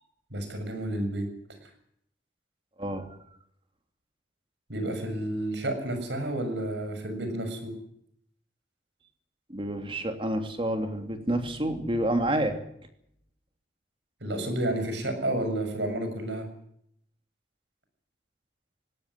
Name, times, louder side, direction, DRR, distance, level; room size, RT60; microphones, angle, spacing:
voice 1, 0.3-1.3 4.7-7.7 14.2-16.5, right 1 dB, 85° right, 7 dB, 7.1 m, -30 dB
voice 2, 2.8-3.1 9.5-12.6, right 1 dB, 30° right, 6 dB, 2.9 m, -28 dB
20.0 x 17.5 x 9.9 m, 0.73 s
head